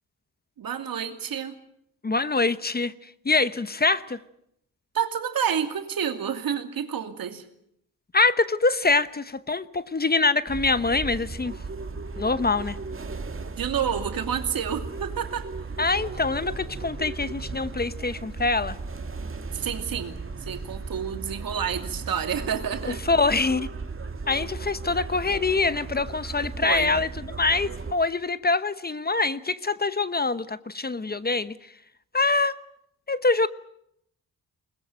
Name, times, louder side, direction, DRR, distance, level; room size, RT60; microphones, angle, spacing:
voice 1, 0.6-1.5 4.9-7.4 13.6-15.5 19.5-23.0 26.6-26.9, right 8 dB, 70° right, 2.6 m, -29 dB
voice 2, 2.0-4.2 8.1-11.5 12.2-12.8 15.8-18.8 22.8-23.7 24.3-31.6 32.1-32.6 33.1-33.5, left 3 dB, 25° left, 1.0 m, -24 dB
sound 1, 10.5-27.9, right 4 dB, 35° right, 2.3 m, -36 dB
22.0 x 20.5 x 9.0 m
cardioid pair, 70°, 36 cm